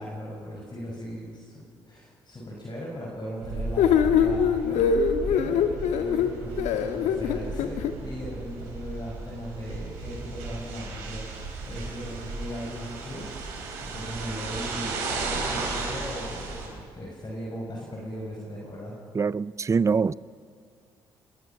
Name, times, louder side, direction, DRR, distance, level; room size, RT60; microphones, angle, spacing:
voice 1, 0.0-4.8 5.3-18.9, equal, 35° left, 6.2 m, -38 dB
sound 1, 3.4-16.7, right 3 dB, 75° right, 4.8 m, -35 dB
sound 2, 3.8-7.9, left 7 dB, 70° left, 1.4 m, -23 dB
voice 2, 19.1-20.1, right 5 dB, 25° right, 0.4 m, -24 dB
25.5 x 21.0 x 5.9 m
hypercardioid pair, 45°, 12 cm